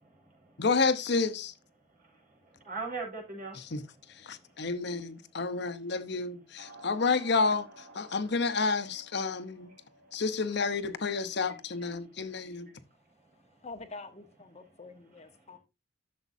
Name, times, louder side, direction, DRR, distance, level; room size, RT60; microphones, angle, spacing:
voice 1, 0.0-0.6 2.0-3.7 4.3-4.4, right 4 dB, 50° right, 5.3 m, -41 dB
voice 2, 0.6-1.5 3.5-3.8 4.2-9.7 10.1-12.7, left 4 dB, 65° left, 0.9 m, -30 dB
sound 1, 6.6-11.6, right 2 dB, 80° right, 2.7 m, -54 dB
voice 3, 13.6-15.6, left 3 dB, 35° left, 1.0 m, -46 dB
12.5 x 7.2 x 2.7 m
head